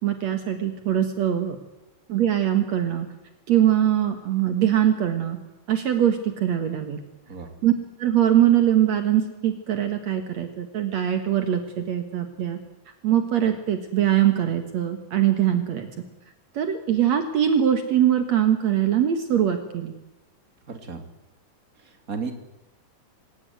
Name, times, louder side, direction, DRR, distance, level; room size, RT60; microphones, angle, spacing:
voice 1, 0.0-1.6 2.1-3.1 3.5-5.4 5.7-7.0 7.6-7.7 8.0-12.6 13.0-15.9 16.5-19.9, right 10 dB, 60° right, 7 dB, 2.7 m, -22 dB
voice 2, 20.7-21.0 21.8-22.3, right 5 dB, 30° right, 6 dB, 3.1 m, -33 dB
26.0 x 17.0 x 9.5 m, 1.0 s
omnidirectional pair, 3.5 m